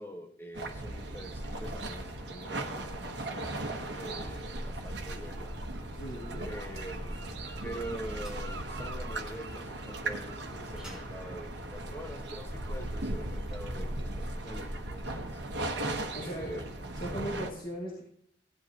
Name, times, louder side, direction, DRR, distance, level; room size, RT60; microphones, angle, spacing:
voice 1, 0.0-5.6 6.4-7.2 7.6-15.4 16.2-16.7, equal, 15° left, 2 dB, 1.4 m, -45 dB
sound 1, 0.5-17.5, right 1 dB, 80° right, 1.4 m, -37 dB
sound 2, 0.8-16.7, equal, 5° right, 5.2 m, -51 dB
voice 2, 5.9-6.5 16.1-16.6 16.9-18.0, right 1 dB, 55° left, -5 dB, 2.6 m, -38 dB
17.0 x 11.5 x 3.0 m, 0.73 s
head